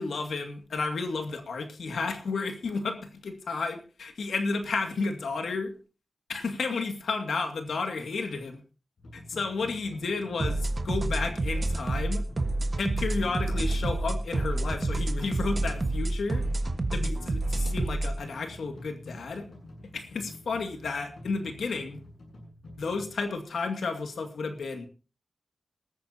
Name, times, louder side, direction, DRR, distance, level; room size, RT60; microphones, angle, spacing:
voice 1, 0.0-5.7 6.3-8.6 9.1-12.2 12.8-16.5 16.9-19.5 19.9-22.0 22.8-24.9, left 4 dB, 90° left, 5 dB, 2.2 m, -32 dB
sound 1, 9.0-23.2, left 1 dB, 65° left, 7.8 m, -47 dB
sound 2, 10.4-18.1, right 2 dB, 35° right, 1.5 m, -28 dB
19.5 x 13.5 x 2.8 m, 0.35 s
wide cardioid pair, 95°, 0 cm